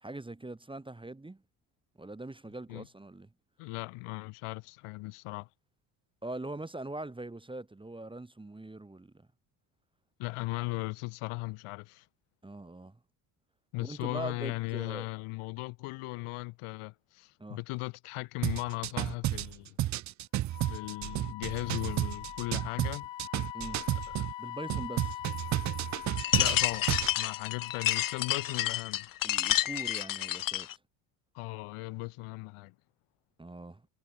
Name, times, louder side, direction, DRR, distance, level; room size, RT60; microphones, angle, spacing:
voice 1, 0.0-1.4 2.0-3.3 6.2-9.3 12.4-13.0 13.8-15.1 17.4-17.6 23.5-23.8 24.4-25.2 29.2-30.7 33.4-33.8, right 2 dB, 10° right, 1.4 m, -42 dB
voice 2, 3.6-5.5 10.2-12.0 13.7-19.8 20.7-23.1 24.2-24.3 26.4-29.1 31.3-32.7, left 23 dB, 80° left, 3.3 m, -37 dB
sound 1, 18.4-24.3 24.7-27.1, right 14 dB, 40° right, 0.5 m, -32 dB
Wind instrument woodwind instrument, 20.5-28.8, left 14 dB, 60° left, 3.2 m, -43 dB
sound 2, 26.2-30.7, left 13 dB, 45° left, 0.8 m, -30 dB
supercardioid pair, 95°, 49 cm